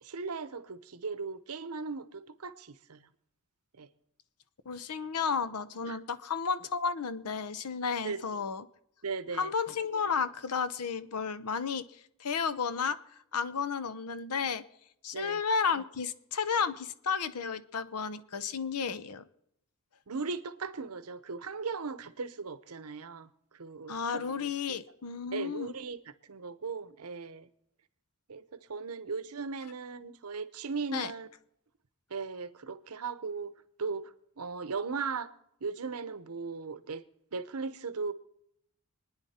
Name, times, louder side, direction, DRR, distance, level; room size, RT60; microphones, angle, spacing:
voice 1, 0.0-3.1 3.8-3.9 5.9-6.0 8.0-8.4 9.0-9.5 15.1-15.4 20.1-24.2 25.3-27.5 28.3-31.3 32.1-33.5 33.8-35.3 35.6-37.0 37.3-38.1, right 4 dB, 75° right, 0.8 m, -38 dB
voice 2, 4.7-8.6 9.4-13.0 13.3-14.6 15.0-19.2 23.9-25.7 30.9-31.1, left 6 dB, 85° left, 0.8 m, -32 dB
26.0 x 9.8 x 4.3 m
head